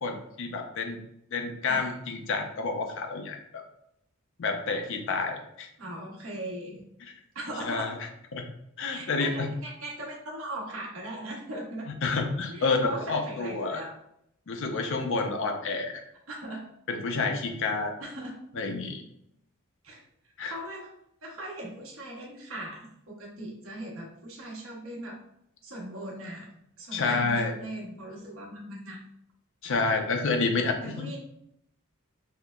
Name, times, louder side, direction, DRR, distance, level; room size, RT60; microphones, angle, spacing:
voice 1, 0.0-1.0 1.3-3.6 4.4-5.7 7.0-7.1 7.6-8.0 8.3-8.4 8.8-9.5 12.0-13.8 14.5-16.0 16.9-17.9 18.5-19.0 20.4-20.6 26.9-27.5 29.6-31.2, left 3 dB, 65° left, 4 dB, 0.5 m, -29 dB
voice 2, 5.8-6.8 7.3-8.1 8.9-11.9 12.5-13.9 16.3-16.7 18.0-18.4 19.8-20.0 20.5-20.9 21.2-25.2 25.6-29.0 30.8-31.2, right 1 dB, 70° right, -2 dB, 1.0 m, -39 dB
5.4 x 2.1 x 2.3 m, 0.76 s
head